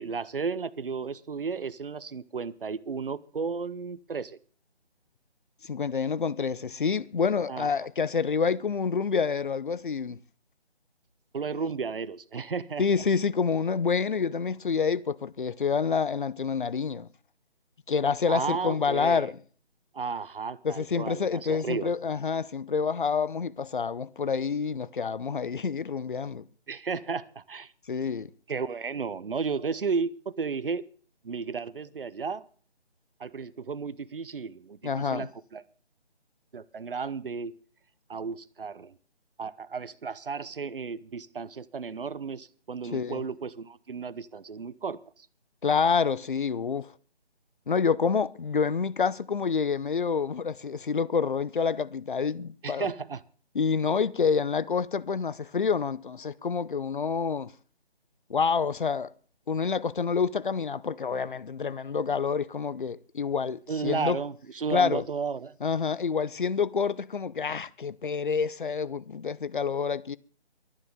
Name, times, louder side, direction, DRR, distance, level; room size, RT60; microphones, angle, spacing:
voice 1, 0.0-4.4 7.5-7.7 11.3-12.8 18.3-19.3 19.9-21.9 26.7-27.7 28.5-30.8 31.2-32.4 33.2-35.6 36.5-37.5 38.1-39.0 39.4-45.3 52.6-53.2 63.7-65.6, right 5 dB, 55° right, 1.0 m, -33 dB
voice 2, 5.6-10.2 12.8-17.1 17.9-19.3 20.6-26.4 27.9-28.3 34.8-35.3 42.9-43.2 45.6-46.9 47.7-52.9 53.5-57.5 58.3-59.1 59.5-64.2 64.7-65.0 65.6-70.2, left 5 dB, 50° left, 0.8 m, -28 dB
23.5 x 9.9 x 3.6 m
figure-of-eight pair, 155°, 33 cm